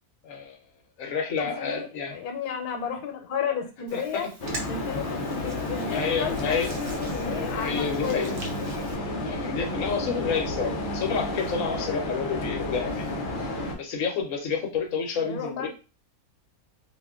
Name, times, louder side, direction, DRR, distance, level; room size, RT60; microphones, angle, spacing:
voice 1, 0.2-0.6 1.0-2.2 3.9-4.0 5.9-6.7 7.3-8.3 9.2-13.0 13.8-15.7, left 5 dB, 65° left, 2 dB, 1.1 m, -29 dB
voice 2, 1.4-4.3 4.7-6.6 6.9-8.4 15.2-15.7, left 7 dB, 85° left, 5 dB, 1.3 m, -33 dB
Hands, 3.9-8.9, right 2 dB, 55° right, 0.9 m, -44 dB
sound 1, 4.4-13.8, left 2 dB, 50° left, 0.6 m, -31 dB
2.9 x 2.3 x 3.6 m, 0.33 s
omnidirectional pair, 1.6 m